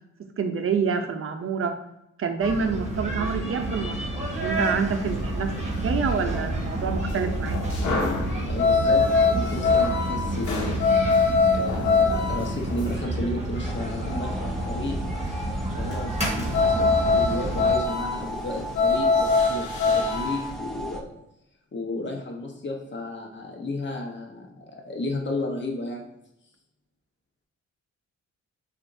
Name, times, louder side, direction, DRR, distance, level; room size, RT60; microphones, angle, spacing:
voice 1, 0.4-1.7 2.2-4.0 4.4-7.6, right 5 dB, 50° right, 6 dB, 0.6 m, -27 dB
sound 1, 2.4-17.8, right 1 dB, 25° right, 1.4 m, -29 dB
sound 2, 4.5-12.9 16.3-20.5, left 4 dB, 80° left, 1.1 m, -24 dB
voice 2, 8.4-10.8 11.5-15.0 15.7-21.2 21.7-26.1, left 2 dB, 40° left, 1 dB, 1.1 m, -33 dB
sound 3, 13.6-21.0, right 1 dB, ahead, 0.5 m, -36 dB
7.1 x 2.6 x 2.6 m, 0.83 s
cardioid pair, 105°, 29 cm